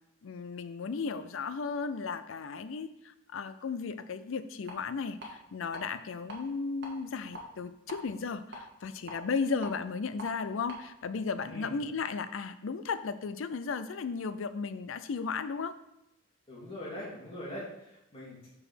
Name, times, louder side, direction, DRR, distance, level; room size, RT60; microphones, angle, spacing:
voice 1, 0.2-15.7, left 5 dB, 75° left, 12 dB, 0.5 m, -35 dB
sound 1, 4.7-4.8 5.2-5.8 6.1-6.4 6.8-8.0 8.5-10.3 10.7-10.8, equal, 60° right, 1.6 m, -44 dB
voice 2, 11.4-11.8 16.5-18.5, left 1 dB, 25° left, -7 dB, 2.4 m, -42 dB
4.9 x 4.8 x 6.2 m, 0.87 s
head